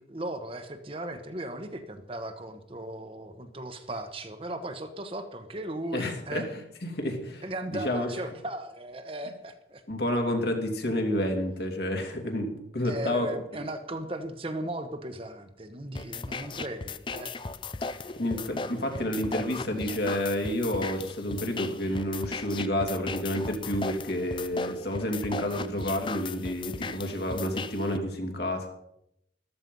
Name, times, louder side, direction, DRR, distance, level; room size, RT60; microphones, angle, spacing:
voice 1, 0.0-6.5 7.4-9.8 12.8-17.3, right 1 dB, 30° right, 7 dB, 1.2 m, -37 dB
voice 2, 5.9-6.4 6.9-7.4 7.7-8.1 9.9-13.3 18.2-28.7, left 1 dB, 65° left, 2 dB, 2.8 m, -29 dB
sound 1, 15.9-28.0, left 4 dB, 30° left, 0.6 m, -37 dB
14.0 x 13.0 x 5.4 m, 0.79 s
head